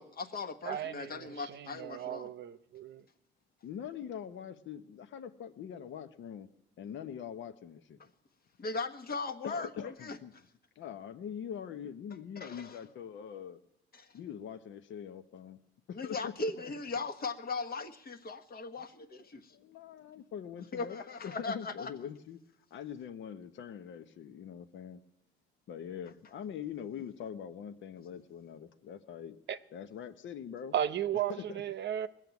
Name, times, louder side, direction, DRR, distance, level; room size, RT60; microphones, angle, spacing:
voice 1, 0.0-2.3 8.6-10.2 12.4-12.8 13.9-14.1 15.9-19.5 20.7-21.9, left 3 dB, 50° left, 1.4 m, -38 dB
voice 2, 0.6-3.0 29.5-29.6 30.7-32.1, right 10 dB, 60° right, 0.8 m, -35 dB
voice 3, 3.6-6.5 6.8-8.0 9.4-10.3 10.8-13.6 14.1-15.6 15.9-16.3 19.2-22.4 22.7-25.0 25.7-29.4 29.7-30.7 31.3-31.6, left 8 dB, 70° left, 1.0 m, -43 dB
19.5 x 7.6 x 9.5 m
cardioid pair, 90°, 20 cm